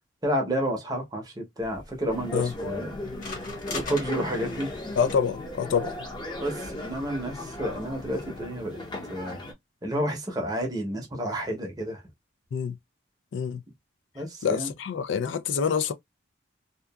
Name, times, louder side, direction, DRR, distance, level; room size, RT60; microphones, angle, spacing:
voice 1, 0.2-2.9 3.6-4.8 6.4-8.8 9.1-9.4 9.8-12.0 14.1-14.7, equal, 20° right, 0.7 m, -30 dB
sound 1, 1.6-8.4, left 3 dB, 45° left, 1.0 m, -43 dB
sound 2, 2.1-9.5, left 2 dB, 25° left, 0.6 m, -37 dB
voice 2, 5.0-5.9 12.5-12.8 13.3-13.6 14.4-15.9, left 7 dB, 75° left, 0.3 m, -26 dB
2.7 x 2.3 x 2.2 m
head